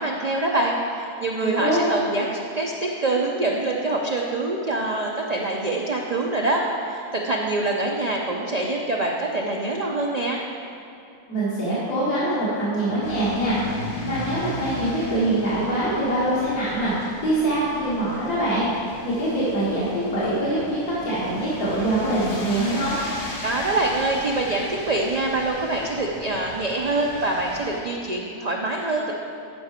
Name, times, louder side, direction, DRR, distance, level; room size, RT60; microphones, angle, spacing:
voice 1, 0.0-10.4 23.4-29.1, right 2 dB, 65° right, -1 dB, 0.4 m, -25 dB
voice 2, 1.4-1.8 11.3-22.9, right 1 dB, 80° left, -9 dB, 2.4 m, -24 dB
sound 1, 13.0-27.8, left 1 dB, 65° left, 2.1 m, -36 dB
9.4 x 5.8 x 5.1 m, 2.5 s
omnidirectional pair, 1.6 m